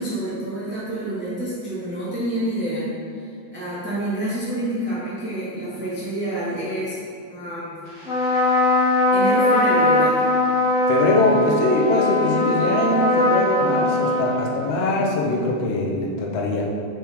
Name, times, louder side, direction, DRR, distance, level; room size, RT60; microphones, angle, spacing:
voice 1, 0.0-2.9 3.5-7.0 7.3-7.7 9.1-10.2, right 1 dB, 5° right, -11 dB, 1.0 m, -27 dB
Trumpet, 8.0-14.9, left 2 dB, 50° left, 1.2 m, -20 dB
voice 2, 10.9-16.7, left 2 dB, 80° left, -2 dB, 0.6 m, -22 dB
6.0 x 5.3 x 3.4 m, 2.3 s
omnidirectional pair, 2.3 m